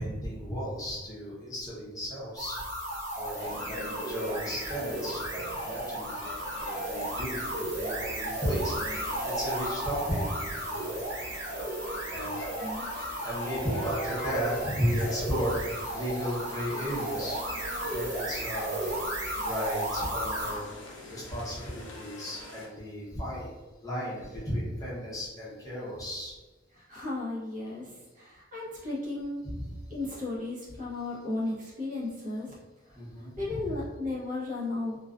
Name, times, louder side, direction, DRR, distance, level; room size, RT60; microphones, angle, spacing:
voice 1, 0.0-2.6 3.1-10.3 10.7-11.0 12.1-12.6 13.2-18.9 19.4-20.7 21.1-23.6 23.8-26.3 29.4-29.7 32.9-33.8, equal, 20° left, -7 dB, 0.7 m, -34 dB
sound 1, 2.4-20.6, right 1 dB, 80° right, 0.9 m, -34 dB
sound 2, 3.4-22.7, left 1 dB, 70° left, 0.5 m, -44 dB
sound 3, 13.4-14.9, equal, 10° right, 1.1 m, -38 dB
voice 2, 26.7-29.4 29.9-32.5 32.8-35.0, left 2 dB, 45° right, -6 dB, 0.7 m, -35 dB
2.4 x 2.3 x 2.3 m, 1.2 s
head